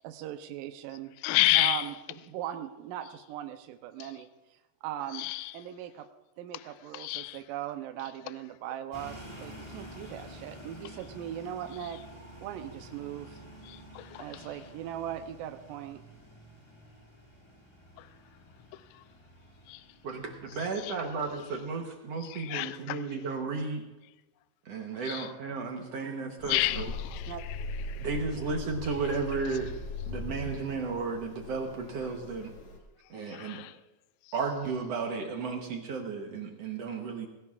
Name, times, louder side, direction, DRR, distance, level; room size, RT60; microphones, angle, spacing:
voice 1, 0.0-1.1 1.6-1.9 2.3-4.3 4.8-5.3 5.5-6.1 6.4-12.0 12.4-13.4 14.2-16.0 27.3-27.4, right 11 dB, 80° right, 2.3 m, -39 dB
voice 2, 1.2-1.8 5.1-5.5 6.9-7.4 13.7-14.4 19.7-19.8 20.8-20.9 22.2-23.0 25.0-25.3 26.4-27.3 27.9-28.1 33.3-33.7, left 20 dB, 85° left, 1.8 m, -30 dB
sound 1, 8.9-21.7, equal, 25° left, 0.6 m, -50 dB
voice 3, 20.0-23.8 24.6-26.9 28.0-29.7 30.1-32.5 33.1-33.6 34.3-37.3, right 4 dB, 65° right, 1.7 m, -34 dB
sound 2, 26.4-32.8, left 3 dB, 60° left, 3.0 m, -40 dB
18.5 x 17.0 x 2.4 m
omnidirectional pair, 4.1 m